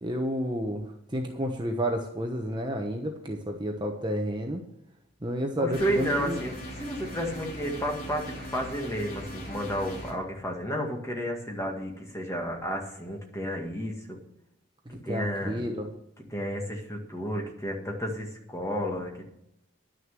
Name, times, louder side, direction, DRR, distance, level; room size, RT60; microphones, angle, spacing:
voice 1, 0.0-0.8 1.1-4.6 5.2-6.4 14.9-15.9, equal, 20° right, 2 dB, 1.0 m, -30 dB
voice 2, 5.6-14.2 14.9-15.6 16.3-19.3, equal, 15° left, 1 dB, 1.8 m, -32 dB
sound 1, 5.7-10.1, equal, 45° left, 3.4 m, -40 dB
11.0 x 6.5 x 7.5 m, 0.80 s
head